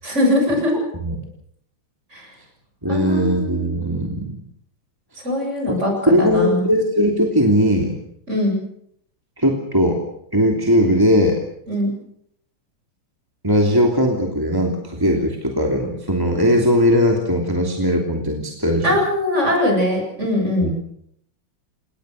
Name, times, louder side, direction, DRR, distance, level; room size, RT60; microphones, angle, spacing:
voice 1, 0.0-0.7 2.1-2.3 2.9-3.7 5.2-6.6 8.3-8.6 11.7-11.9 18.8-20.7, left 1 dB, 30° right, 2 dB, 8.1 m, -21 dB
voice 2, 2.8-4.3 5.7-5.8 6.1-8.0 9.4-10.0 10.3-11.4 13.4-19.0 20.6-20.7, equal, 10° right, 1 dB, 2.8 m, -19 dB
29.5 x 19.0 x 6.6 m, 0.71 s
omnidirectional pair, 2.3 m